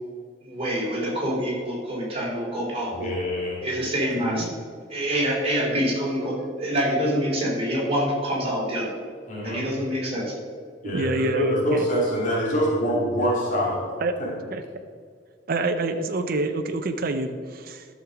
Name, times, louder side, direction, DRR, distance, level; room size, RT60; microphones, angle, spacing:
voice 1, 0.4-3.1 3.6-4.5 4.9-8.9 9.4-10.3, equal, 35° right, -4 dB, 3.1 m, -26 dB
voice 2, 2.9-3.6 9.3-9.6 10.8-13.8 14.2-14.3, equal, 45° left, -4 dB, 2.3 m, -25 dB
voice 3, 4.2-4.5 10.8-11.9 14.0-14.1 14.5-14.6 15.5-17.9, right 2 dB, 55° right, 6 dB, 0.6 m, -27 dB
12.0 x 6.6 x 4.8 m, 2.1 s
head